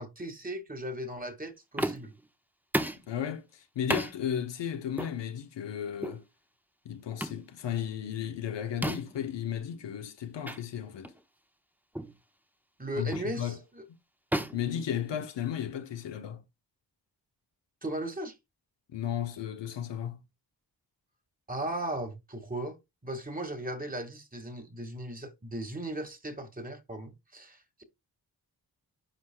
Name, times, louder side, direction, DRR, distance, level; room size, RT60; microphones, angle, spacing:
voice 1, 0.0-2.1 12.8-13.8 17.8-18.4 21.5-22.8 23.0-27.8, right 1 dB, 20° right, 1.9 m, -37 dB
sound 1, 1.8-2.2 2.7-3.1 3.9-4.2 5.0-5.2 6.0-6.2 7.2-7.4 8.8-9.2 10.5-10.6 11.0-11.2 12.0-12.2 13.1-13.4 14.3-15.5, right 1 dB, 5° right, 1.1 m, -33 dB
voice 2, 3.1-6.2 6.8-11.1 12.9-13.6 14.5-16.4 18.9-20.2, left 9 dB, 85° left, 1.0 m, -34 dB
10.0 x 4.7 x 2.3 m
cardioid pair, 45°, 42 cm